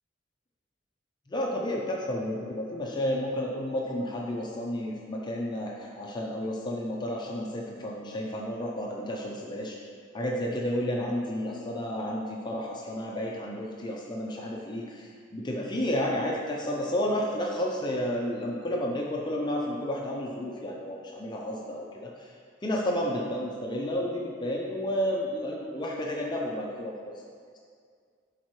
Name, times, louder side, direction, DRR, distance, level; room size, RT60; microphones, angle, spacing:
voice 1, 1.3-9.8 10.1-27.2, equal, 25° left, -2 dB, 0.6 m, -31 dB
11.5 x 4.5 x 3.1 m, 2.1 s
head